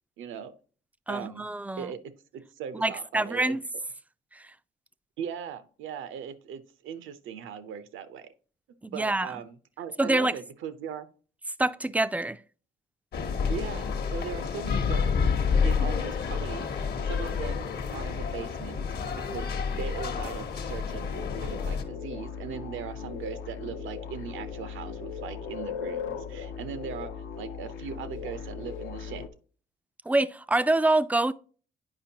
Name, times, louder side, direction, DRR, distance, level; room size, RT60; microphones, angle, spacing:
voice 1, 0.2-0.5 1.1-1.5 1.8-3.6 5.2-8.3 8.9-11.1 13.5-15.1 15.6-18.9 19.2-27.1 27.4-29.3, right 8 dB, 80° right, 0.7 m, -39 dB
voice 2, 1.1-1.9 2.7-3.6 4.3-4.4 8.8-9.3 10.0-10.3 11.6-12.4 30.1-31.3, right 2 dB, 10° right, 0.3 m, -26 dB
sound 1, 13.1-21.8, left 6 dB, 55° left, 0.9 m, -29 dB
sound 2, 21.1-29.3, left 7 dB, 80° left, 0.8 m, -38 dB
8.7 x 5.1 x 2.8 m
cardioid pair, 90°, 20 cm